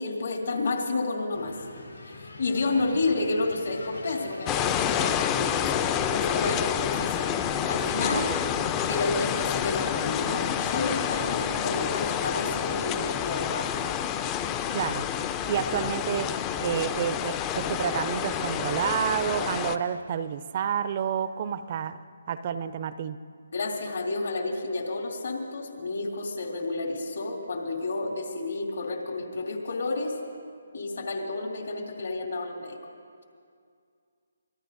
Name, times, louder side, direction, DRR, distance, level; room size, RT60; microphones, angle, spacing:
voice 1, 0.0-1.5 2.1-7.3 7.6-8.3 8.9-13.7 23.5-30.1 30.7-32.8, left 3 dB, 65° left, 0 dB, 2.8 m, -30 dB
sound 1, 1.3-11.5, left 2 dB, 90° left, 5.4 m, -43 dB
sound 2, 4.5-19.8, left 9 dB, 20° left, 0.5 m, -28 dB
voice 2, 14.7-15.1 15.4-22.0 22.3-23.2, right 8 dB, 40° right, 13 dB, 0.5 m, -29 dB
25.5 x 19.0 x 2.6 m, 2.2 s
figure-of-eight pair, 150°, 0 cm